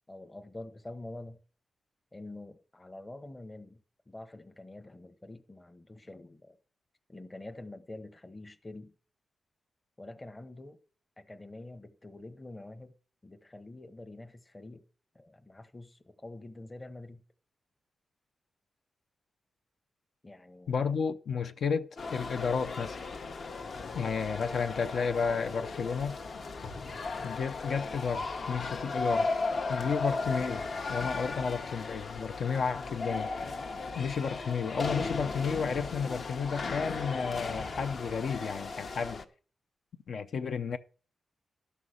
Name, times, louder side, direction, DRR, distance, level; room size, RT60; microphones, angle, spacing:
voice 1, 0.1-1.4 2.1-6.6 7.1-8.9 10.0-10.8 11.2-12.9 13.2-14.8 15.1-17.2 20.2-21.0, left 2 dB, 20° left, 0.9 m, -46 dB
voice 2, 20.7-23.0 23.9-26.2 27.2-29.3 29.7-33.3 33.9-39.2 40.1-40.8, left 6 dB, 70° left, 0.6 m, -32 dB
sound 1, 22.0-39.3, left 3 dB, 55° left, 1.0 m, -36 dB
12.5 x 5.6 x 6.4 m
wide cardioid pair, 120°, 0 cm